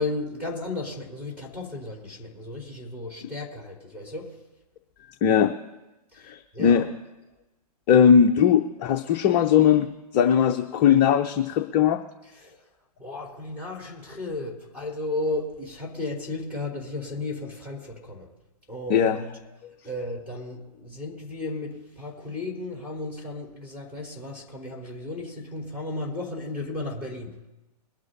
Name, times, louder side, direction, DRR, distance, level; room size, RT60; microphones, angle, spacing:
voice 1, 0.0-4.3 6.1-6.9 12.3-12.6 13.0-18.3 18.7-19.3 19.8-27.3, left 2 dB, 10° right, -2 dB, 3.6 m, -34 dB
voice 2, 5.2-5.5 6.3-6.9 7.9-9.9 10.1-12.0 18.9-19.2 19.6-19.7, left 8 dB, 25° left, 6 dB, 0.6 m, -19 dB
22.0 x 11.5 x 2.7 m, 1.0 s
figure-of-eight pair, 125°, 20 cm